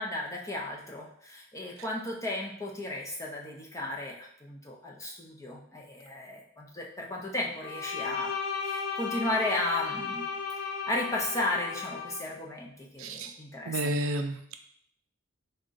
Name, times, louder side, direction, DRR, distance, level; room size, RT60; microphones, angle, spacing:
voice 1, 0.0-8.3 8.6-10.2 10.6-14.0, left 1 dB, 15° left, -2 dB, 0.5 m, -34 dB
Bowed string instrument, 7.6-12.3, left 5 dB, 80° left, 0.5 m, -35 dB
voice 2, 13.0-13.3 13.7-14.5, right 1 dB, 75° right, 6 dB, 0.4 m, -31 dB
3.6 x 2.2 x 3.8 m, 0.67 s
head